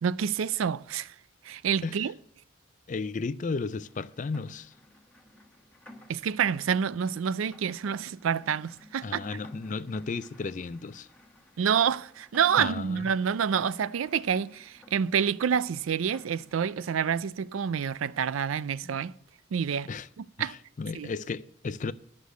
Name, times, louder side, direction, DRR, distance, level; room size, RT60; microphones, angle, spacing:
voice 1, 0.0-1.1 1.4-2.1 6.1-9.3 11.6-19.1 19.5-19.9 20.2-20.5 20.9-21.1, right 7 dB, 90° right, 0.4 m, -28 dB
voice 2, 2.9-4.7 9.0-11.1 12.6-13.1 18.8-18.9 19.9-20.1 20.4-21.9, left 4 dB, 40° left, 0.4 m, -34 dB
Rain, 3.7-17.0, left 1 dB, 5° left, 1.4 m, -54 dB
11.5 x 6.6 x 8.1 m
head